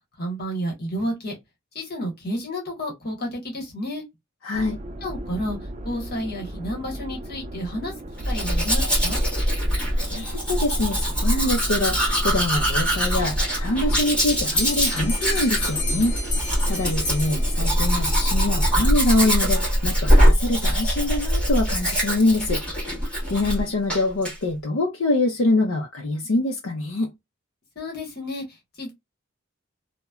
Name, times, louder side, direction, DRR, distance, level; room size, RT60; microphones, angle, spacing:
voice 1, 0.2-1.4 1.7-4.0 5.0-5.6 5.8-7.9 8.3-9.2 27.7-28.4 28.8-28.9, equal, 50° left, 1.3 m, -30 dB
voice 2, 4.4-4.8 9.8-22.6 23.3-27.1, left 2 dB, 80° left, 0.6 m, -25 dB
sound 1, 4.5-18.9, right 1 dB, 35° right, 0.5 m, -36 dB
Domestic sounds home sounds, 8.2-23.6 23.9-24.4, equal, 5° left, 1.4 m, -22 dB
Bell, 14.3-17.9, left 2 dB, 25° left, 0.8 m, -32 dB
3.0 x 2.1 x 2.2 m
head